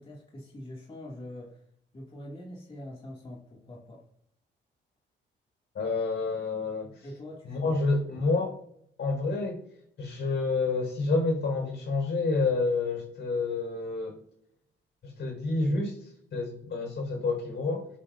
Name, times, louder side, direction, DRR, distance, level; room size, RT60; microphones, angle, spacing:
voice 1, 0.0-1.6 1.9-4.0 7.0-8.4, left 1 dB, 25° left, -3 dB, 2.4 m, -44 dB
voice 2, 5.7-7.1 7.4-8.6 9.0-9.6 10.0-14.2 15.0-17.9, left 3 dB, 60° left, 2 dB, 4.9 m, -29 dB
19.0 x 8.5 x 2.7 m, 0.74 s
cardioid pair, 90°, 20 cm